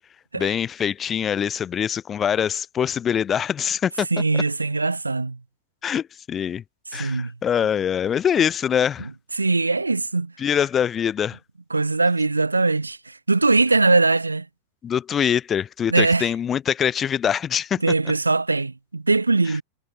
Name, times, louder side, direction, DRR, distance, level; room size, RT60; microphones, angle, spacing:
voice 1, 0.3-4.1 5.8-6.6 6.9-9.1 10.4-11.4 14.8-17.8, left 8 dB, 25° left, 1.3 m, -23 dB
voice 2, 4.1-5.4 6.9-7.3 9.3-10.3 11.7-14.5 15.9-16.3 17.8-19.6, right 3 dB, 80° right, 1.2 m, -21 dB
figure-of-eight pair, 90°, 0 cm